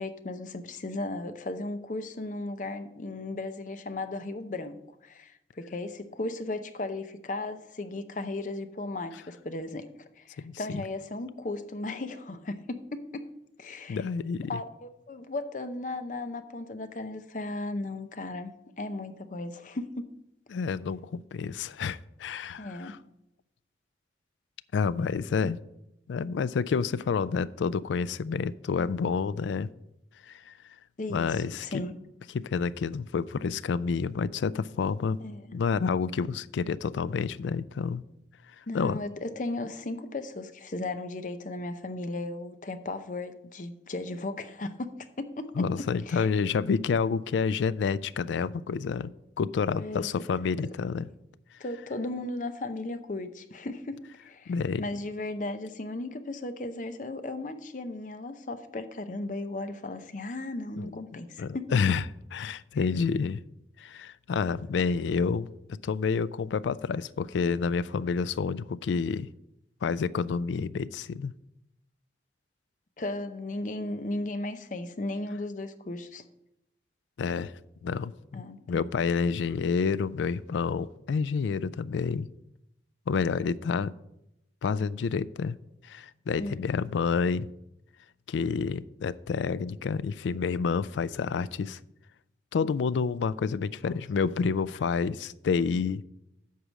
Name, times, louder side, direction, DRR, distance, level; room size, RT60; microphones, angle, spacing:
voice 1, 0.0-9.9 10.2-13.3 13.6-14.0 14.5-20.1 22.6-23.0 31.0-32.0 35.2-35.5 38.7-46.3 49.8-50.1 51.6-54.5 54.8-62.0 73.0-76.2 78.3-78.9 86.4-86.6 93.8-93.9, left 2 dB, 45° left, 0.6 m, -36 dB
voice 2, 10.4-10.8 13.9-14.6 20.5-23.0 24.7-25.6 26.1-29.7 30.3-30.5 31.1-31.8 32.3-35.2 35.5-38.0 38.7-39.0 45.6-49.1 49.4-51.1 54.5-54.9 60.8-60.9 61.4-62.0 62.3-63.4 63.8-69.3 69.8-71.3 77.2-77.5 77.8-82.3 83.1-83.9 84.6-85.6 85.8-87.5 88.3-91.8 92.5-96.0, left 5 dB, 85° left, 0.3 m, -29 dB
8.1 x 4.9 x 7.4 m
head